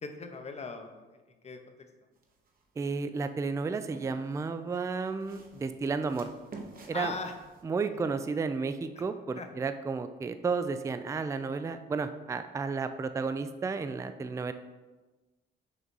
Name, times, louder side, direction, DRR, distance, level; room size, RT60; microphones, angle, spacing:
voice 1, 0.0-1.7 6.9-7.3 9.4-9.5, left 4 dB, 35° left, 6 dB, 0.7 m, -40 dB
sound 1, 2.2-2.6 3.2-4.4 5.0-7.6, right 3 dB, 45° right, 0.9 m, -49 dB
voice 2, 2.8-6.3 6.9-7.1 7.6-14.5, right 4 dB, 15° right, 10 dB, 0.3 m, -32 dB
6.2 x 2.8 x 5.3 m, 1.2 s
cardioid pair, 90°, 20 cm